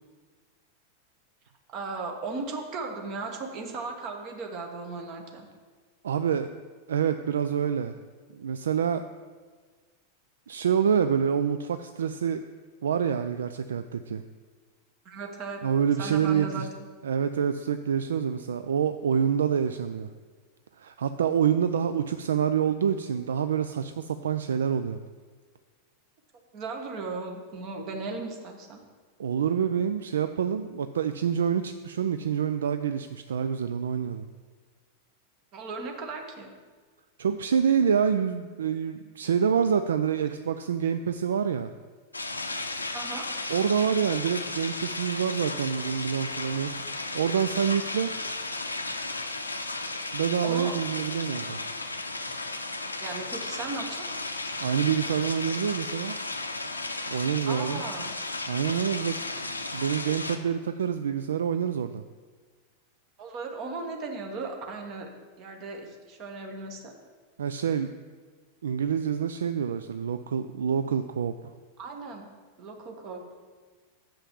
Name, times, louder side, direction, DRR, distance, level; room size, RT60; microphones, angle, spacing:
voice 1, 1.7-5.5 15.0-15.6 16.0-16.7 26.5-28.8 35.5-36.5 42.9-43.3 50.1-50.8 53.0-54.1 57.5-58.1 63.2-65.1 65.4-66.9 71.8-72.2 72.6-73.2, right 3 dB, 40° right, 3 dB, 1.3 m, -36 dB
voice 2, 6.0-6.5 6.9-8.0 8.3-9.0 10.5-12.4 12.8-14.2 15.6-16.7 17.0-20.1 20.8-25.0 29.2-34.2 37.2-41.7 43.5-46.7 47.1-48.1 50.1-51.6 54.6-56.2 57.1-57.8 58.5-59.2 59.7-62.0 67.4-67.9 68.6-71.3, right 7 dB, 65° right, 10 dB, 0.3 m, -27 dB
sound 1, 42.1-60.4, left 2 dB, 80° left, 0.6 m, -34 dB
7.0 x 5.6 x 7.2 m, 1.5 s
figure-of-eight pair, 90°, 0 cm